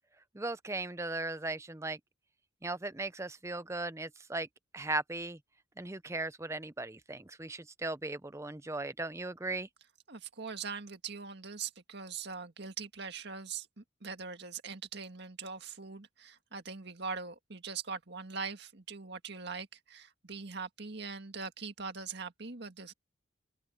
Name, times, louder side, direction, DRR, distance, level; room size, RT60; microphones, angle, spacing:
voice 1, 0.3-2.0 2.6-4.5 4.7-5.4 5.8-9.7, right 2 dB, 15° right, 0.6 m, -37 dB
voice 2, 10.1-22.9, right 5 dB, 55° right, 2.0 m, -42 dB
open air
head